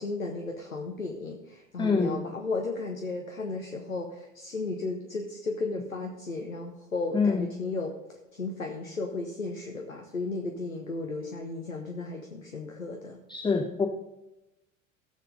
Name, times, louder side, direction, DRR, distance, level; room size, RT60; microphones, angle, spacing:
voice 1, 0.0-7.9 8.3-13.2, left 3 dB, 85° left, 3 dB, 0.9 m, -34 dB
voice 2, 1.8-2.2 7.1-7.5 13.3-13.9, left 4 dB, 10° left, 5 dB, 0.7 m, -25 dB
16.0 x 6.8 x 3.9 m, 0.96 s
figure-of-eight pair, 70°, 40 cm